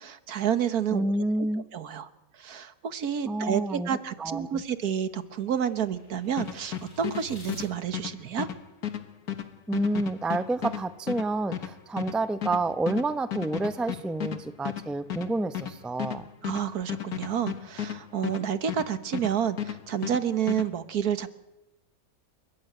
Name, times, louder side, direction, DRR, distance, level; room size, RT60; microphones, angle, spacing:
voice 1, 0.0-1.1 1.7-8.5 16.4-21.3, right 8 dB, 80° right, 11 dB, 1.7 m, -29 dB
voice 2, 0.9-1.6 3.2-3.9 4.2-4.6 9.7-16.2, right 2 dB, ahead, 11 dB, 0.6 m, -29 dB
sound 1, 4.0-7.6, left 4 dB, 50° left, 6.7 m, -51 dB
sound 2, 6.4-19.3 19.6-20.7, left 10 dB, 85° left, 2.0 m, -34 dB
29.5 x 15.0 x 9.2 m, 0.97 s
omnidirectional pair, 1.6 m